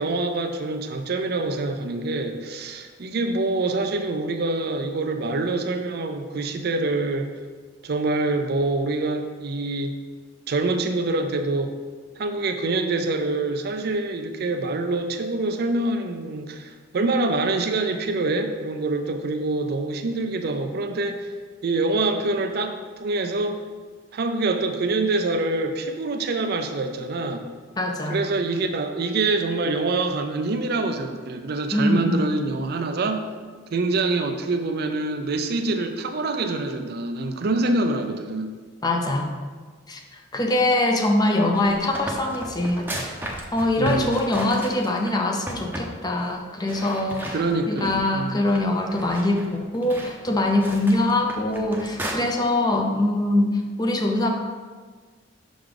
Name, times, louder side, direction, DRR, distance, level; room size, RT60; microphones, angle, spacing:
voice 1, 0.0-7.3 7.8-9.9 10.5-11.7 12.2-21.3 21.6-23.6 24.1-27.4 28.1-33.2 33.7-38.5 43.8-44.3 47.3-48.4, right 2 dB, 55° right, 6 dB, 0.5 m, -25 dB
voice 2, 27.8-28.2 31.7-32.3 38.8-39.3 39.9-43.1 43.5-47.4 47.7-54.3, left 1 dB, 20° left, 3 dB, 0.6 m, -23 dB
sound 1, 41.3-45.1 45.5-45.9 46.2-46.3 46.7-48.1 48.5-52.1, right 1 dB, 10° right, 0.7 m, -35 dB
5.9 x 5.0 x 3.8 m, 1.5 s
head